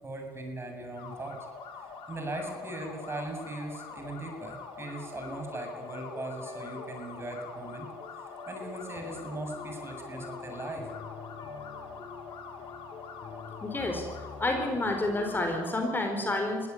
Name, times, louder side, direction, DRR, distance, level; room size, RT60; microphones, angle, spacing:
voice 1, 0.0-1.5 2.1-7.9 8.2-10.9, right 2 dB, 25° right, 3 dB, 7.9 m, -39 dB
sound 1, 1.0-15.9, left 5 dB, 65° left, 4.8 m, -45 dB
sound 2, 4.8-15.6, left 5 dB, 45° left, 3.3 m, -46 dB
voice 2, 13.6-14.1 14.4-16.7, left 2 dB, 20° left, 4 dB, 4.6 m, -29 dB
22.5 x 17.0 x 9.9 m, 1.5 s
supercardioid pair, 75°, 9 cm